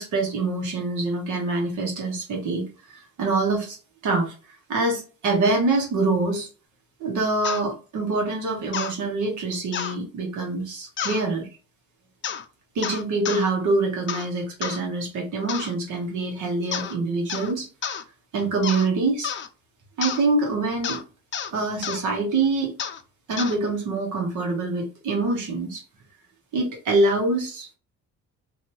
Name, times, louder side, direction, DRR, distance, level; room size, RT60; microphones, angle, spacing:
voice 1, 0.0-3.8 4.0-4.3 4.7-6.5 7.0-11.5 12.7-17.7 18.3-19.3 20.0-21.0 21.5-22.7 23.3-25.8 26.5-27.7, right 3 dB, 75° right, 1 dB, 1.2 m, -25 dB
sound 1, 7.4-7.6 8.7-8.9 9.7-10.0 11.0-11.2 12.2-12.5 12.8-13.4 14.1-14.3 14.6-14.8 15.5-15.7 16.7-17.0 17.3-17.5 17.8-18.0 18.6-18.9 19.2-19.5 20.0-20.2 20.8-21.0 21.3-21.5 21.8-22.0 22.8-23.0 23.4-23.6, left 8 dB, 40° left, 0.4 m, -30 dB
2.8 x 2.6 x 3.0 m, 0.35 s
cardioid pair, 90°, 30 cm